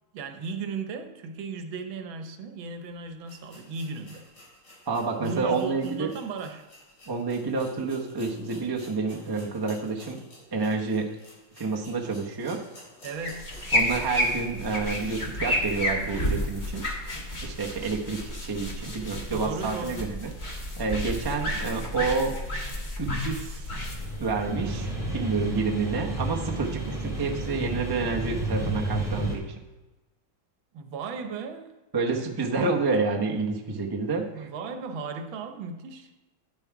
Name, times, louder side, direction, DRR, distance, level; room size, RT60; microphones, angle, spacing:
voice 1, 0.1-4.3 5.2-6.7 13.0-13.6 19.3-20.2 30.7-31.8 34.4-36.1, right 4 dB, 80° right, 8 dB, 1.6 m, -36 dB
sound 1, 2.7-2.8 3.2-13.9 14.2-14.3 14.8-14.9, left 1 dB, 60° left, 3.8 m, -52 dB
voice 2, 4.9-6.1 7.1-10.2 10.5-11.1 11.6-12.6 13.7-16.8 17.4-20.3 20.8-22.4 23.0-23.7 24.2-29.5 31.9-34.5, right 4 dB, 30° right, 0 dB, 0.4 m, -29 dB
sound 2, 13.2-25.1, left 1 dB, 25° left, 1.4 m, -31 dB
sound 3, 23.8-29.4, right 2 dB, ahead, 2.4 m, -31 dB
9.8 x 7.3 x 4.6 m, 1.1 s
omnidirectional pair, 2.2 m